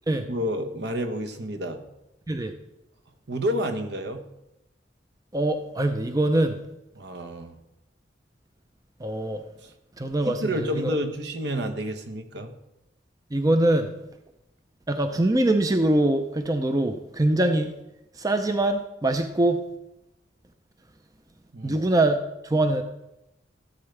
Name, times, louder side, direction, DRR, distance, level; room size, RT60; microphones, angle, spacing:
voice 1, 0.3-1.8 3.3-4.2 7.0-7.6 9.6-9.7 10.0-12.5 21.5-21.8, equal, 65° right, 5 dB, 1.0 m, -30 dB
voice 2, 5.3-6.6 9.0-9.4 10.0-10.9 13.3-13.9 14.9-17.7 18.2-19.6 21.6-22.2 22.4-22.8, right 1 dB, 20° right, 7 dB, 0.5 m, -23 dB
14.5 x 8.0 x 3.3 m, 0.91 s
head